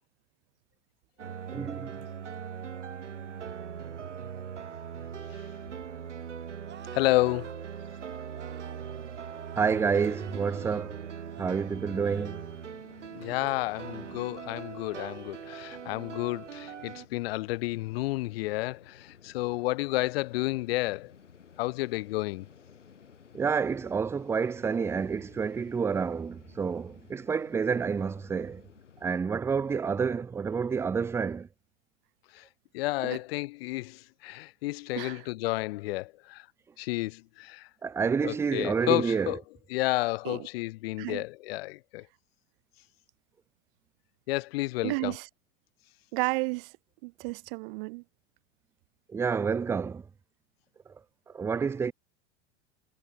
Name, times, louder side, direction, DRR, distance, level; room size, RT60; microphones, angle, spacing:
sound 1, 1.2-17.1, right 7 dB, 80° right, 3.1 m, -40 dB
voice 1, 1.5-2.0 9.6-11.0 11.4-12.4 23.3-28.6 29.0-31.5 37.8-39.3 49.1-50.0 51.3-51.9, right 6 dB, 10° right, 0.4 m, -29 dB
sound 2, 6.6-7.6 8.3-8.8 9.3-10.9 11.2-11.6 12.0-12.4 12.8-13.1, right 10 dB, 30° right, 3.9 m, -52 dB
voice 2, 6.9-7.7 13.1-21.1 21.6-22.5 32.3-32.5 32.7-36.5 36.8-37.7 38.2-39.4 39.7-42.1 44.3-45.1, left 20 dB, 55° left, 1.0 m, -31 dB
sound 3, 11.9-29.1, left 7 dB, 80° left, 3.7 m, -55 dB
voice 3, 34.9-35.3 40.2-40.5 41.0-41.2 44.8-45.3 46.1-46.7 47.0-48.0, right 28 dB, 50° right, 1.5 m, -32 dB
figure-of-eight pair, 90°, 36 cm